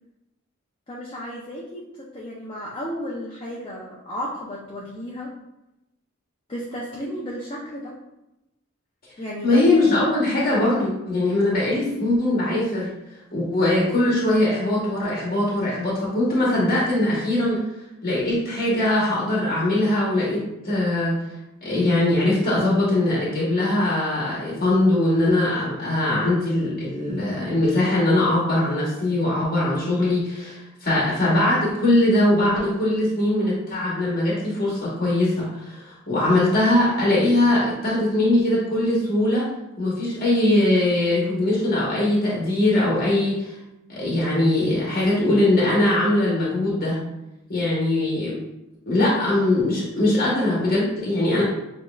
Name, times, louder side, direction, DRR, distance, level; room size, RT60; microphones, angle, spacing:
voice 1, 0.9-5.3 6.5-7.9 9.2-9.7, equal, 25° left, -5 dB, 0.7 m, -33 dB
voice 2, 9.4-12.9 13.3-17.6 18.0-20.4 20.6-21.2 21.6-39.5 39.8-43.5 43.9-47.0 47.5-48.4 48.9-51.4, left 1 dB, 50° left, -5 dB, 1.1 m, -21 dB
7.3 x 2.8 x 2.4 m, 0.92 s
head